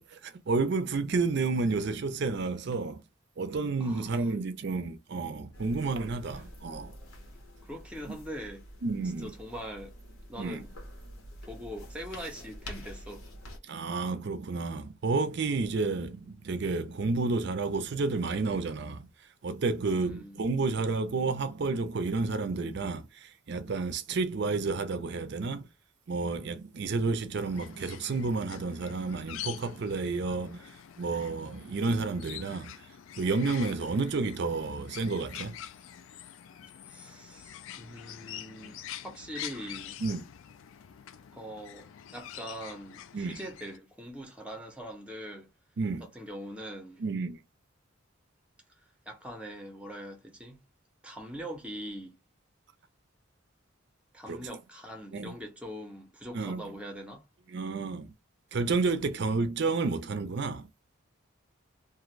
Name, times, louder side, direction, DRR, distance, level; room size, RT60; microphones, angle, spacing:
voice 1, 0.0-3.0 3.4-6.9 8.8-9.3 10.4-10.6 13.6-19.1 19.4-25.7 26.1-30.7 31.0-32.7 33.2-35.6 40.0-40.2 43.1-43.4 45.8-46.1 47.0-47.4 54.3-54.4 55.1-55.3 56.3-56.6 57.5-58.1 58.5-60.7, right 3 dB, 50° right, 0.4 m, -30 dB
voice 2, 3.8-4.3 6.3-6.5 7.6-8.7 9.2-9.9 10.3-10.7 11.5-13.3 19.9-20.4 36.9-40.0 41.3-45.5 46.0-47.0 49.1-50.6 51.0-52.1 54.1-57.2, equal, 5° right, 0.6 m, -42 dB
sound 1, 5.5-13.6, equal, 85° left, 1.0 m, -47 dB
sound 2, 27.3-43.8, left 11 dB, 70° left, 0.3 m, -46 dB
2.5 x 2.5 x 3.1 m
head